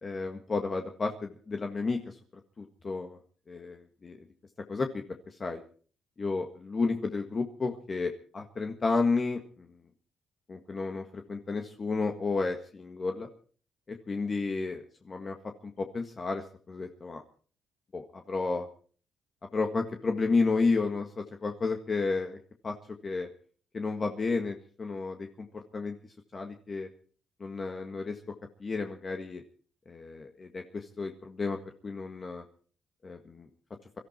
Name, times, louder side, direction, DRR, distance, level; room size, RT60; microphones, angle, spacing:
voice 1, 0.0-2.1 2.6-3.2 3.5-4.2 4.7-5.6 6.2-9.7 10.5-13.3 13.9-15.4 15.6-17.2 17.9-18.7 19.5-22.4 22.6-22.7 23.0-23.3 23.7-26.0 26.3-26.9 27.4-28.2 28.6-29.4 29.9-31.6 31.8-32.4 33.0-33.5, left 4 dB, 35° left, 4 dB, 1.7 m, -32 dB
23.0 x 14.0 x 4.4 m, 0.43 s
cardioid pair, 90°, 0 cm